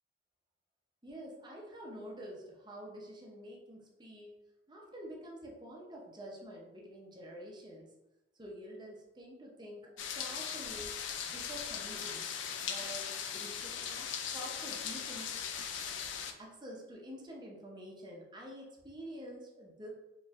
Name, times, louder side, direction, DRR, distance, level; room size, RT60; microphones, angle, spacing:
voice 1, 1.0-4.4 4.7-7.9 8.4-10.9 11.2-12.3 12.6-15.3 16.4-19.9, equal, 25° right, -2 dB, 0.7 m, -48 dB
sound 1, 10.0-16.3, left 7 dB, 75° left, 0.4 m, -39 dB
4.2 x 3.0 x 2.5 m, 0.98 s
head